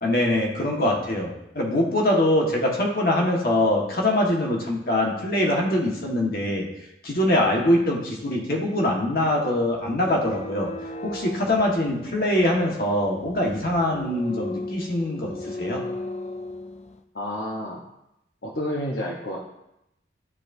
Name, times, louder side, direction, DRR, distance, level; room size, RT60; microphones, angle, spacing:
voice 1, 0.0-6.7 7.0-10.7 11.0-15.8, left 1 dB, 55° left, -2 dB, 1.4 m, -23 dB
sound 1, 10.0-17.0, left 2 dB, 40° left, 0.4 m, -37 dB
voice 2, 17.1-17.8 18.4-19.4, left 1 dB, 70° left, -3 dB, 0.9 m, -30 dB
12.0 x 4.1 x 2.6 m, 0.84 s
head